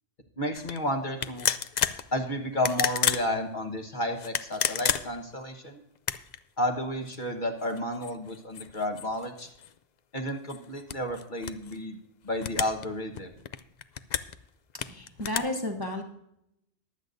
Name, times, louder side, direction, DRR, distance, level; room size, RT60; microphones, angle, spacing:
voice 1, 0.4-1.5 2.1-5.8 6.6-9.5 10.1-12.0 12.2-13.3, left 1 dB, 40° left, 3 dB, 1.4 m, -31 dB
sound 1, 0.5-0.8 1.2-2.0 2.5-3.3 4.2-5.3 6.0-6.4 7.1-7.2 7.6-9.7 10.2-11.8 12.4-12.9 13.1-14.4 14.8-15.4, left 8 dB, 60° left, 0.4 m, -30 dB
voice 2, 14.8-16.0, left 1 dB, 20° right, 2 dB, 1.0 m, -32 dB
22.5 x 8.1 x 2.6 m, 0.80 s
omnidirectional pair, 1.2 m